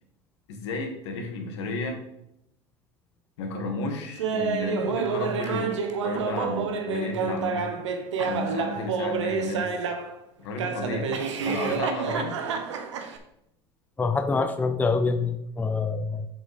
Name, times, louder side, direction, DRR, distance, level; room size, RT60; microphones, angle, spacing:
voice 1, 0.5-2.0 3.4-7.7 8.2-9.7 10.4-11.1 11.4-12.4, left 2 dB, 75° left, 3 dB, 2.1 m, -32 dB
Laughter, 4.2-10.1 10.6-13.2, right 5 dB, 90° right, 1.2 m, -28 dB
voice 2, 14.0-16.3, left 4 dB, 10° left, 8 dB, 0.6 m, -25 dB
7.4 x 5.7 x 5.0 m, 0.80 s
hypercardioid pair, 105°, 15 cm